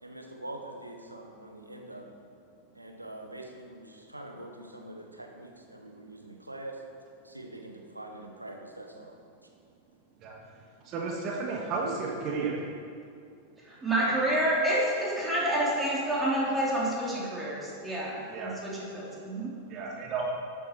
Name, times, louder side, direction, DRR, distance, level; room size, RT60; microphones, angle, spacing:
voice 1, 0.0-2.1 2.7-6.8 7.2-9.1, right 1 dB, 85° right, 2 dB, 1.4 m, -44 dB
voice 2, 10.9-12.5 18.3-18.5 19.7-20.2, right 4 dB, 35° right, -2 dB, 2.1 m, -32 dB
voice 3, 13.6-19.6, right 1 dB, 10° right, -5 dB, 3.1 m, -28 dB
13.5 x 8.9 x 4.5 m, 2.4 s
figure-of-eight pair, 90°, 0 cm